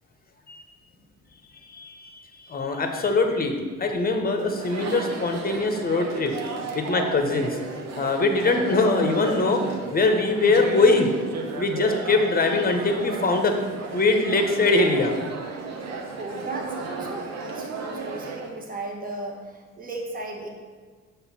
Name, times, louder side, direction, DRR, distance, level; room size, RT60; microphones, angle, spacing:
voice 1, 1.7-6.3 6.7-7.6 8.0-9.6 9.9-11.1 11.6-13.5 13.9-15.1, left 3 dB, 30° left, 5 dB, 0.9 m, -22 dB
Chatter, 4.4-18.5, right 4 dB, 60° right, 0.9 m, -34 dB
voice 2, 15.8-20.5, right 2 dB, 30° right, 0 dB, 1.2 m, -36 dB
6.4 x 3.3 x 5.8 m, 1.5 s
cardioid pair, 90°, 30 cm